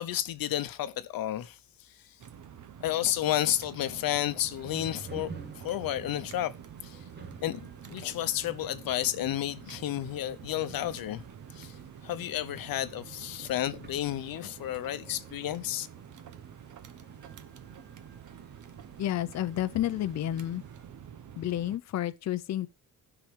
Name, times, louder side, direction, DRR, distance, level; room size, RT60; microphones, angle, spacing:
voice 1, 0.0-1.6 2.8-6.5 6.8-7.0 7.4-11.2 11.5-11.7 12.0-15.9, left 13 dB, 85° left, 0.9 m, -31 dB
sound 1, 2.2-21.8, right 8 dB, 60° right, 1.2 m, -48 dB
sound 2, 4.1-20.9, right 4 dB, 30° right, 2.0 m, -52 dB
voice 2, 19.0-20.6 21.4-22.7, left 12 dB, 50° left, 0.6 m, -30 dB
13.5 x 6.0 x 5.0 m
cardioid pair, 160°, 34 cm